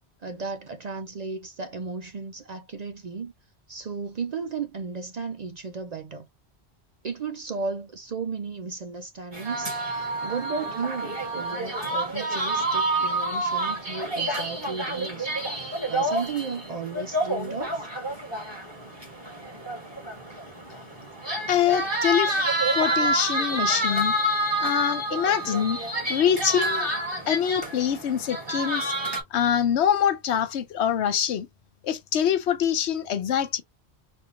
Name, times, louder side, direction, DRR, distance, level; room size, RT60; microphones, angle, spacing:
voice 1, 0.2-3.3 3.7-6.3 7.0-17.9, right 5 dB, 50° right, 0.5 m, -34 dB
sound 1, 9.3-29.2, right 1 dB, 25° right, 1.6 m, -28 dB
voice 2, 21.5-22.4 22.7-24.2 24.6-25.8 26.1-26.9 27.3-28.9 29.3-31.5 31.8-33.6, left 9 dB, 85° left, 1.0 m, -24 dB
4.3 x 2.4 x 2.8 m
omnidirectional pair, 1.1 m